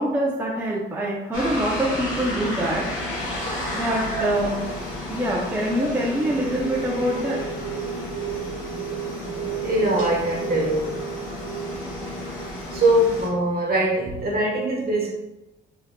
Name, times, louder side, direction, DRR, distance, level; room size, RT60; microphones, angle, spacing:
voice 1, 0.0-2.9 3.7-4.6 5.1-7.4, equal, 10° right, -3 dB, 0.5 m, -25 dB
sound 1, 1.3-13.3, right 1 dB, 85° left, 1.2 m, -31 dB
voice 2, 9.6-11.1 12.7-15.1, right 1 dB, 50° right, -2 dB, 1.2 m, -22 dB
3.5 x 3.3 x 2.2 m, 0.94 s
cardioid pair, 90°, 20 cm